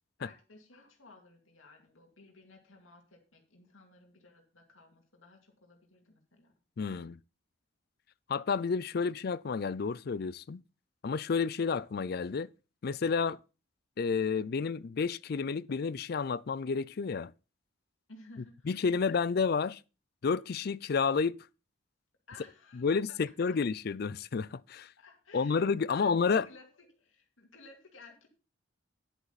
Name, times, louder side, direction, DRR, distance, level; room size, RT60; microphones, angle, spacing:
voice 1, 0.2-6.5 18.1-19.0 22.3-23.6 25.0-28.3, left 3 dB, 85° left, 2.3 m, -56 dB
voice 2, 6.8-7.2 8.3-10.6 11.0-12.5 12.8-13.4 14.0-17.3 18.7-19.8 20.2-21.4 22.7-24.9 25.3-26.4, left 5 dB, 50° left, 0.4 m, -30 dB
10.5 x 8.0 x 4.1 m
head